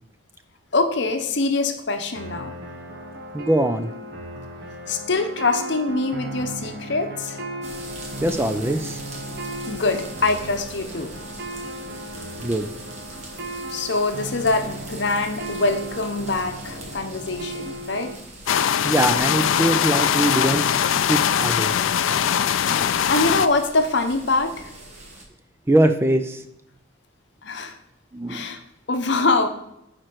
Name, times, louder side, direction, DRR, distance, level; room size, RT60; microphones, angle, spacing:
voice 1, 0.7-2.5 4.9-7.4 9.7-11.1 13.7-18.1 23.1-24.7 27.4-27.8 28.3-28.6 28.9-29.5, left 3 dB, 55° left, 7 dB, 0.8 m, -24 dB
sound 1, 2.1-18.1, right 1 dB, 50° right, 0.9 m, -36 dB
voice 2, 3.3-3.9 8.2-9.0 12.4-12.7 18.8-21.8 25.7-26.4 28.1-28.4, right 1 dB, 10° right, 8 dB, 0.4 m, -22 dB
sound 2, 7.6-25.2, right 2 dB, 35° right, 1.3 m, -41 dB
sound 3, 18.5-23.5, left 9 dB, 75° left, 0.4 m, -21 dB
9.8 x 4.4 x 4.6 m, 0.79 s
head